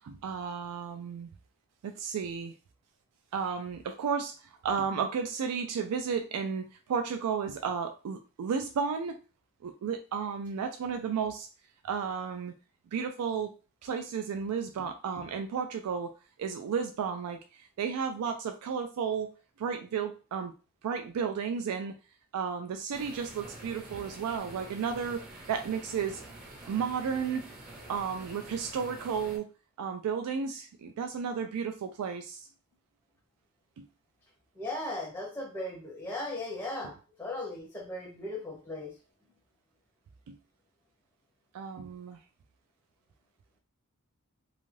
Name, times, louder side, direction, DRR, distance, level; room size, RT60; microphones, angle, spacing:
voice 1, 0.0-1.3 1.8-2.5 3.3-9.2 9.6-11.5 11.8-12.5 12.9-13.5 13.8-16.1 16.4-19.3 19.6-20.5 20.8-21.9 22.3-26.2 26.7-27.5 27.9-29.5 29.8-32.5 33.8-33.9 40.3-40.4 41.5-42.2, right 6 dB, 90° right, 6 dB, 0.3 m, -33 dB
sound 1, 22.9-29.4, right 1 dB, 40° right, 0.8 m, -47 dB
voice 2, 34.6-38.9, left 2 dB, 10° left, -2 dB, 0.5 m, -37 dB
2.6 x 2.4 x 3.1 m, 0.34 s
head